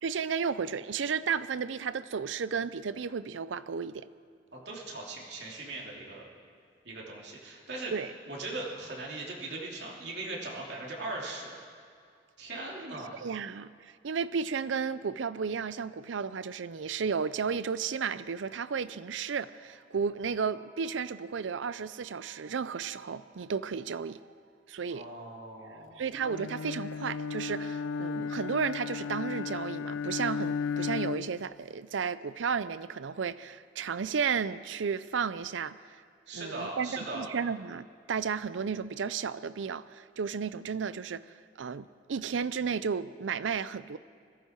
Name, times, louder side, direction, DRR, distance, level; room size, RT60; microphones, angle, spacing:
voice 1, 0.0-4.1 7.9-8.1 13.2-24.2 24.7-25.1 26.0-35.8 36.3-44.0, right 6 dB, 85° right, 16 dB, 0.5 m, -33 dB
voice 2, 4.5-6.2 6.8-7.9 8.3-11.6 12.4-13.3 24.9-26.0 36.3-37.3, right 2 dB, 65° right, -3 dB, 3.1 m, -39 dB
Bowed string instrument, 26.2-31.5, left 6 dB, 90° left, 0.4 m, -35 dB
21.0 x 14.5 x 4.6 m, 2.3 s
head